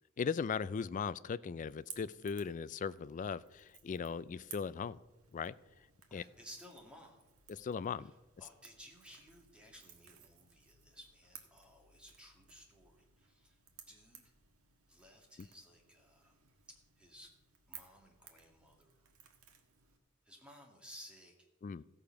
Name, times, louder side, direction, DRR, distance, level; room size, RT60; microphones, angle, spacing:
voice 1, 0.2-5.0 5.3-5.5 6.1-6.2 7.5-8.1 21.6-21.8, left 6 dB, 35° left, 18 dB, 0.3 m, -38 dB
Crackle / Crack, 1.7-20.0, right 8 dB, 90° right, 1.4 m, -59 dB
voice 2, 6.1-7.2 8.0-8.1 8.4-13.6 13.9-14.2 14.9-16.4 17.0-17.3 17.7-19.1 20.2-21.4, equal, 5° right, 0 dB, 2.0 m, -57 dB
15.0 x 6.7 x 5.8 m, 1.0 s
head